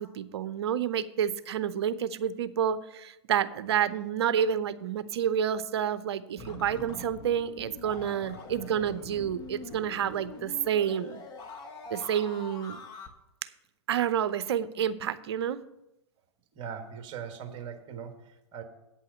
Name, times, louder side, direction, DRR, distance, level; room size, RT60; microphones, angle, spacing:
voice 1, 0.0-11.2 11.9-12.8 13.9-15.6, right 9 dB, 60° right, 15 dB, 0.7 m, -29 dB
sound 1, 6.4-13.1, left 3 dB, 30° left, 1.2 m, -44 dB
voice 2, 16.5-18.6, right 7 dB, 35° right, 6 dB, 1.5 m, -40 dB
8.7 x 5.6 x 7.8 m, 0.89 s
hypercardioid pair, 115°, 15 cm